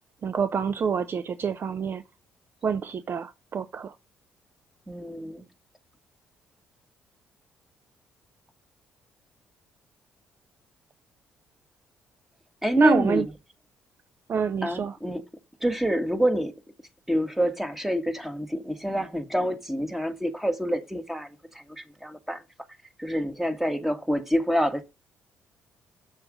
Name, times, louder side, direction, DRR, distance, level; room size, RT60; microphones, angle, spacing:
voice 1, 0.2-2.0 2.6-3.9 12.8-13.2 14.3-14.9, right 6 dB, 45° right, 0.6 m, -26 dB
voice 2, 4.9-5.4 12.6-13.3 14.6-15.2 15.6-16.5 17.1-22.4 23.0-24.8, equal, 5° right, 1.8 m, -27 dB
7.3 x 6.8 x 5.2 m
hypercardioid pair, 50°, 5 cm